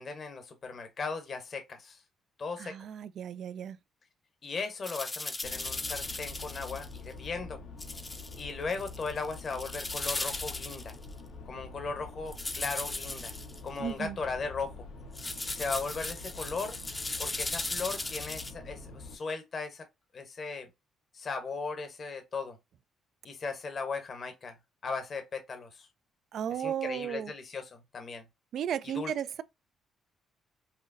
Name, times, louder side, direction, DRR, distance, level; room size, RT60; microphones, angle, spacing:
voice 1, 0.0-2.0 2.4-2.7 4.4-7.6 8.4-10.9 11.4-13.3 13.6-14.8 15.5-16.8 17.2-19.9 20.1-20.7 21.1-22.6 23.2-24.5 24.8-25.9 26.5-28.2 28.9-29.1, left 4 dB, 45° left, 1.0 m, -37 dB
voice 2, 2.6-3.8 13.8-14.2 26.3-27.3 28.5-29.4, right 9 dB, 65° right, 0.3 m, -34 dB
sound 1, 4.8-7.0 7.8-8.4 8.7-11.1 12.3-13.6 15.2-18.5, left 2 dB, 20° left, 0.6 m, -37 dB
sound 2, 5.4-19.2, left 3 dB, 85° left, 1.0 m, -46 dB
5.5 x 2.0 x 2.5 m
cardioid pair, 90°, 0 cm